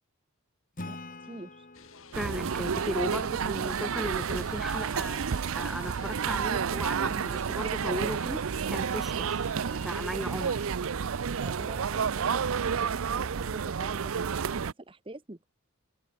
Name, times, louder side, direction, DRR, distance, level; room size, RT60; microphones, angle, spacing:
Acoustic guitar / Strum, 0.8-4.2, left 2 dB, 35° left, 3.8 m, -46 dB
voice 1, 0.8-1.7 11.4-15.5, right 2 dB, 25° right, 0.9 m, -46 dB
sound 1, 1.7-10.7, left 5 dB, 65° left, 7.3 m, -53 dB
voice 2, 2.1-9.4 9.8-10.6, equal, ahead, 1.8 m, -36 dB
sound 2, 2.1-14.7, right 6 dB, 65° right, 0.5 m, -30 dB
head